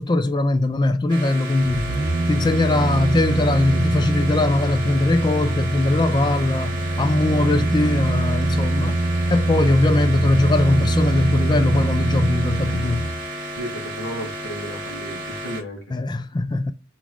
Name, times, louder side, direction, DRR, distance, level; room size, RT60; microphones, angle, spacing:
voice 1, 0.0-1.9 2.3-9.0 9.3-13.1 15.9-16.7, left 2 dB, 20° left, 0.4 m, -21 dB
sound 1, 1.1-15.6, right 1 dB, 20° right, 1.9 m, -33 dB
sound 2, 1.6-13.2 13.6-13.7, right 2 dB, 60° right, 0.7 m, -23 dB
voice 2, 13.6-15.8, equal, 65° left, 2.1 m, -33 dB
4.0 x 3.6 x 3.1 m
head